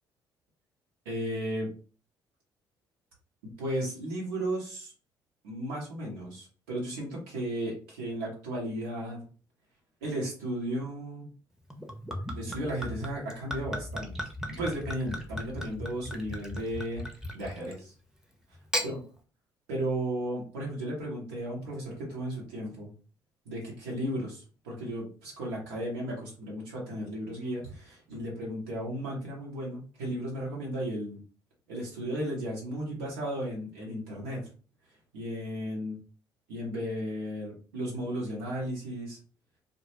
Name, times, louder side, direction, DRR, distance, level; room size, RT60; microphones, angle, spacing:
voice 1, 1.0-1.7 3.6-4.9 5.4-9.2 10.0-11.3 12.3-14.1 14.5-17.0 17.3-17.9 18.8-19.0 19.7-22.9 23.5-31.2 31.7-34.4 35.1-35.9 36.5-39.2, right 1 dB, 75° right, -4 dB, 0.9 m, -34 dB
Gurgling / Chink clink / Liquid, 11.7-17.9 18.5-18.9, equal, 5° right, 0.7 m, -36 dB
2.1 x 2.1 x 3.0 m, 0.38 s
figure-of-eight pair, 45°, 12 cm